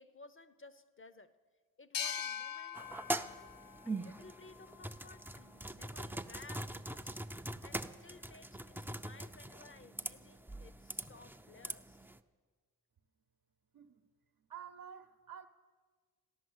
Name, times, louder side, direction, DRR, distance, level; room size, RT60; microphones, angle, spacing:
voice 1, 0.0-1.3 1.8-3.5 3.8-12.0, left 3 dB, 30° left, 0.8 m, -57 dB
sound 1, 1.9-5.3, left 8 dB, 60° left, 0.7 m, -43 dB
sound 2, 2.7-12.2, right 1 dB, 5° right, 0.6 m, -43 dB
voice 2, 13.7-14.1 14.4-15.5, right 8 dB, 65° right, 0.9 m, -50 dB
15.0 x 10.5 x 8.0 m
cardioid pair, 70°, 39 cm